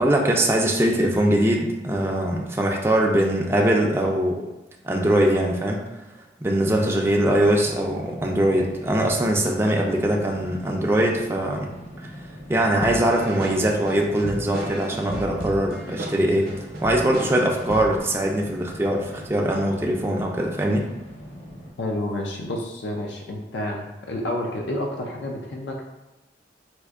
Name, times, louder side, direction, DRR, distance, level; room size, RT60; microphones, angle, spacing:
voice 1, 0.0-4.5 4.8-5.8 6.4-11.7 12.0-12.1 12.5-16.5 16.8-20.9, right 1 dB, 15° right, 0 dB, 0.3 m, -22 dB
sound 1, 7.0-21.7, equal, 35° left, 0.7 m, -41 dB
sound 2, 12.8-18.0, right 1 dB, 60° right, 0.6 m, -33 dB
voice 2, 21.8-25.8, left 1 dB, 75° left, 1 dB, 0.5 m, -29 dB
4.2 x 2.5 x 2.4 m, 1.0 s
head